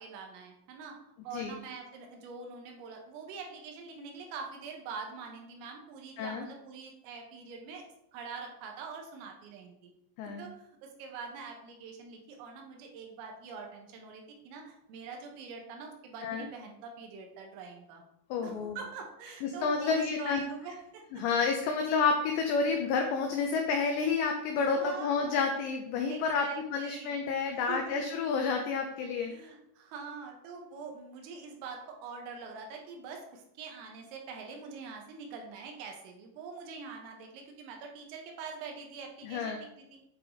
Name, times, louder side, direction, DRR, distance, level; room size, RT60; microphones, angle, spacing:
voice 1, 0.0-7.9 8.1-9.9 10.2-18.0 18.4-21.2 24.6-25.5 26.1-27.1 27.6-28.6 29.3-40.0, right 5 dB, 80° right, 2 dB, 3.8 m, -44 dB
voice 2, 18.3-18.8 19.4-20.4 21.1-26.5 26.7-29.3 39.2-39.6, left 5 dB, 90° left, 3 dB, 2.5 m, -30 dB
8.6 x 4.9 x 3.9 m, 0.79 s
omnidirectional pair, 5.9 m